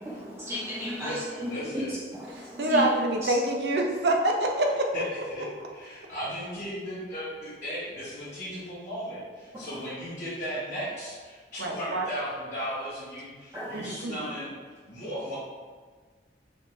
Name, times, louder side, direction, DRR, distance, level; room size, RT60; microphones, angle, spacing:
voice 1, 0.0-1.5 1.9-2.9 3.2-3.3 9.5-9.8 13.5-14.0, left 1 dB, 15° right, -9 dB, 0.5 m, -35 dB
voice 2, 1.0-1.9 4.9-15.4, equal, 50° left, -12 dB, 1.1 m, -36 dB
voice 3, 2.6-4.9 11.6-12.0 13.7-14.2, right 1 dB, 65° right, 2 dB, 0.5 m, -26 dB
4.2 x 2.6 x 3.0 m, 1.5 s
head